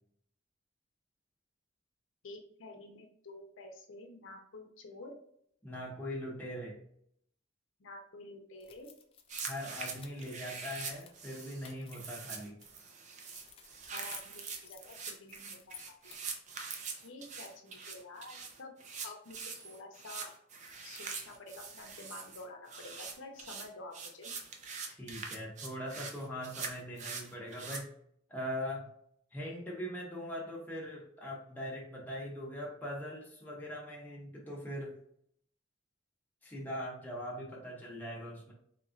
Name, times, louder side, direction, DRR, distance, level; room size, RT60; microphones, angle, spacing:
voice 1, 2.2-5.1 7.8-8.9 13.9-15.8 16.0-16.1 17.0-18.7 19.0-19.4 19.6-20.3 20.8-24.3, left 2 dB, 75° left, 2 dB, 0.6 m, -49 dB
voice 2, 5.6-6.8 9.4-12.6 24.9-27.9 28.3-28.9 29.3-35.0 36.4-38.5, equal, 10° left, -4 dB, 0.7 m, -41 dB
sound 1, 8.6-12.7 13.2-16.4, left 7 dB, 30° left, 0.3 m, -55 dB
sound 2, 9.3-27.8, right 5 dB, 35° right, 0.4 m, -44 dB
3.5 x 2.9 x 2.5 m, 0.68 s
head